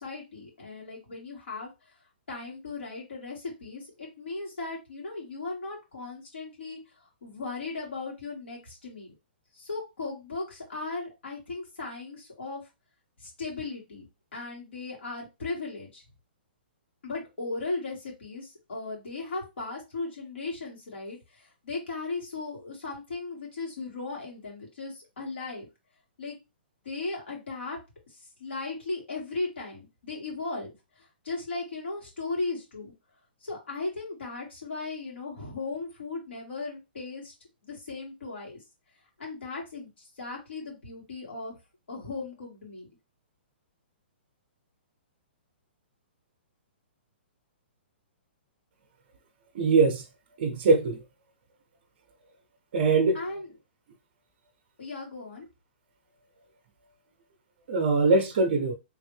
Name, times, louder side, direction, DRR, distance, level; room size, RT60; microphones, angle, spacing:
voice 1, 0.0-1.7 2.3-9.1 9.5-12.6 13.2-14.0 14.3-16.0 17.0-25.7 26.2-26.4 26.8-27.8 28.1-30.7 31.0-32.9 33.4-37.3 37.6-38.6 39.2-41.5 41.9-42.9 53.1-53.5 54.8-55.5, left 3 dB, 90° left, 2.2 m, -37 dB
voice 2, 49.5-50.0 50.4-51.0 52.7-53.2 57.7-58.7, right 3 dB, 45° right, 0.5 m, -22 dB
3.4 x 2.5 x 3.2 m
hypercardioid pair, 165°, 6 cm